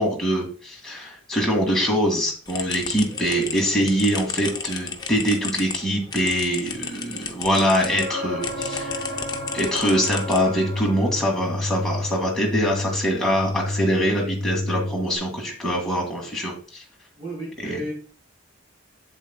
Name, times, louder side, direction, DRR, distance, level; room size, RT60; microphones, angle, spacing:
voice 1, 0.0-9.2 9.5-16.8 17.6-17.8, equal, ahead, -3 dB, 2.0 m, -24 dB
sound 1, 2.5-8.1 8.4-10.8, left 5 dB, 20° left, 0.6 m, -33 dB
sound 2, 7.7-11.5 15.1-15.2, left 1 dB, 75° right, 1.6 m, -33 dB
sound 3, 8.4-15.1, left 2 dB, 50° left, 0.9 m, -31 dB
voice 2, 17.1-17.9, right 1 dB, 30° right, -7 dB, 4.1 m, -32 dB
7.8 x 7.6 x 2.2 m, 0.40 s
head